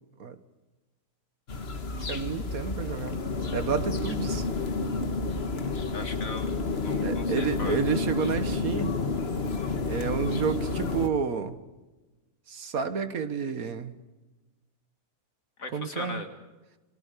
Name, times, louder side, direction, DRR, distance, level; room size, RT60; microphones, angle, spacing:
sound 1, 1.5-11.1, left 3 dB, 45° left, 1.7 m, -30 dB
voice 1, 2.1-3.2 3.5-4.5 7.0-9.0 9.9-11.6 12.5-13.9 15.7-16.2, right 6 dB, 65° right, 10 dB, 1.8 m, -30 dB
voice 2, 5.6-7.8 15.6-16.3, left 3 dB, 60° left, 6 dB, 2.5 m, -39 dB
30.0 x 23.5 x 5.1 m, 1.2 s
omnidirectional pair, 1.6 m